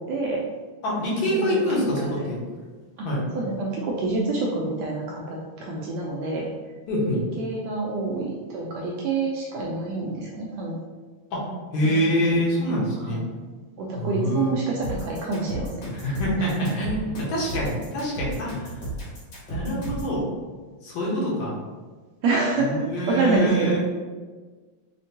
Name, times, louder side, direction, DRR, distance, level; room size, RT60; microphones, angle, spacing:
voice 1, 0.1-0.4 1.3-2.3 3.0-3.1 3.3-6.5 7.4-10.8 11.8-12.3 13.0-13.2 13.8-15.7 16.4-16.5 21.3-21.4 22.2-23.8, right 3 dB, 80° right, -3 dB, 1.6 m, -27 dB
voice 2, 0.8-2.4 3.0-3.2 6.9-7.2 11.3-11.5 11.7-13.2 14.0-14.6 16.0-18.7 19.5-20.2 20.8-21.5 22.6-23.8, equal, 75° left, -5 dB, 2.3 m, -25 dB
sound 1, 14.8-20.1, right 1 dB, 45° left, 1.8 m, -33 dB
5.9 x 2.2 x 2.7 m, 1.4 s
omnidirectional pair, 3.4 m